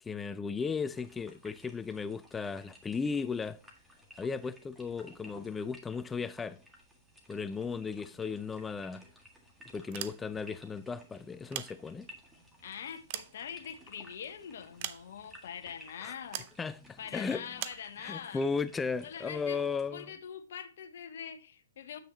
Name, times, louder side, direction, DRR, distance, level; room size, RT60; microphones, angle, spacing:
voice 1, 0.0-3.6 4.2-6.6 7.3-9.1 9.7-12.1 16.0-16.1 16.6-17.4 18.0-20.1, left 5 dB, 10° left, 0.3 m, -35 dB
sound 1, 0.9-19.9, equal, 5° right, 1.7 m, -57 dB
sound 2, 9.8-10.6 11.3-12.3 12.8-14.0 14.8-15.4 16.3-16.6 17.6-17.9, right 14 dB, 45° right, 0.5 m, -41 dB
voice 2, 12.6-16.5 17.0-18.5 19.0-19.6 19.9-22.0, left 8 dB, 65° left, 0.9 m, -43 dB
8.0 x 6.5 x 2.8 m
hypercardioid pair, 130°, 0 cm